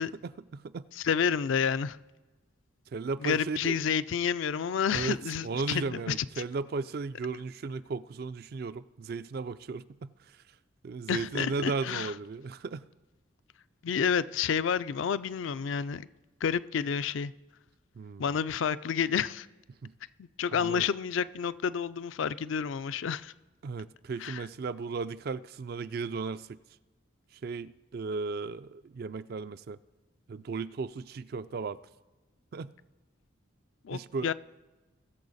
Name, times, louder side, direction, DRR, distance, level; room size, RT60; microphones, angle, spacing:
voice 1, 0.0-0.9 2.9-3.8 4.9-5.2 5.4-10.1 10.8-12.9 18.0-18.3 19.8-19.9 20.5-20.9 23.6-26.6 27.4-29.8 30.3-31.8 32.5-32.7 33.9-34.3, right 4 dB, 50° right, 0.3 m, -35 dB
voice 2, 1.0-2.0 3.2-6.2 11.1-12.1 13.8-16.1 16.4-17.3 18.2-19.5 20.2-23.3 24.2-24.4 33.8-34.3, left 7 dB, 70° left, 0.4 m, -30 dB
20.0 x 7.0 x 4.1 m
head